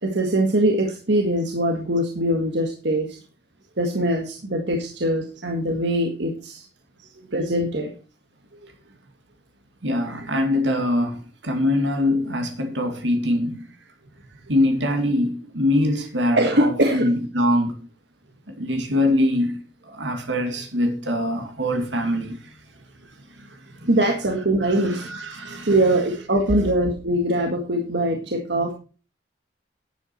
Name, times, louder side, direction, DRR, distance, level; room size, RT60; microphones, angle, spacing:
voice 1, 0.0-3.2 3.8-6.6 7.3-7.9 16.4-17.1 23.8-25.0 25.7-28.7, right 1 dB, 70° right, 1.7 m, -22 dB
voice 2, 9.8-13.7 14.5-17.8 18.6-22.6 23.0-23.1 23.4-23.9 24.6-25.8, left 1 dB, 85° right, 2.1 m, -24 dB
11.0 x 8.5 x 4.4 m
head